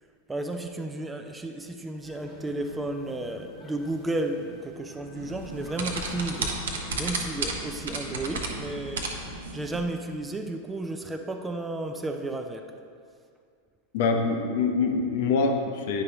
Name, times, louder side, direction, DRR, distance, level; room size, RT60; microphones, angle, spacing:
voice 1, 0.3-6.5 7.0-9.1 9.5-12.7, right 2 dB, 10° right, 5 dB, 0.4 m, -33 dB
sound 1, 2.0-7.1, left 2 dB, 20° left, 1.1 m, -48 dB
sound 2, 5.2-9.9, right 3 dB, 65° right, 0.9 m, -33 dB
voice 2, 13.9-16.0, left 4 dB, 50° left, 4 dB, 0.8 m, -25 dB
9.6 x 5.4 x 4.0 m, 2.3 s
figure-of-eight pair, 90°, 0 cm